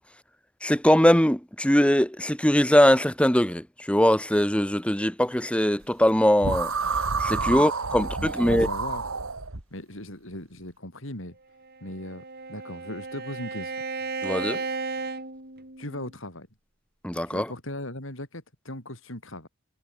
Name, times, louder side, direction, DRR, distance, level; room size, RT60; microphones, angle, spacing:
voice 1, 0.6-6.7 7.2-8.7 14.2-14.6 17.0-17.5, equal, 5° left, 2.0 m, -21 dB
sound 1, 6.4-9.6, right 4 dB, 85° right, 2.6 m, -29 dB
voice 2, 8.0-9.1 9.7-11.4 11.8-13.8 15.8-16.5 17.3-19.5, left 1 dB, 65° left, 6.8 m, -38 dB
Bowed string instrument, 11.6-16.1, right 4 dB, 50° right, 5.5 m, -34 dB
head